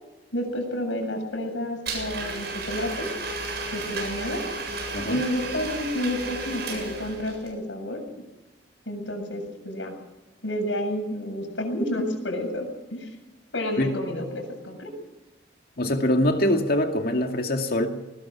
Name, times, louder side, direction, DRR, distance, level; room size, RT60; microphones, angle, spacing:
voice 1, 0.3-3.1 3.7-4.4 5.1-8.3 8.9-10.0 10.4-13.1 13.5-15.0, left 1 dB, 85° left, 4 dB, 7.6 m, -30 dB
Domestic sounds home sounds, 1.9-7.5, right 3 dB, 60° right, 7.9 m, -33 dB
voice 2, 15.8-17.9, left 1 dB, 55° left, 4 dB, 2.3 m, -23 dB
21.5 x 20.5 x 6.2 m, 1.1 s
head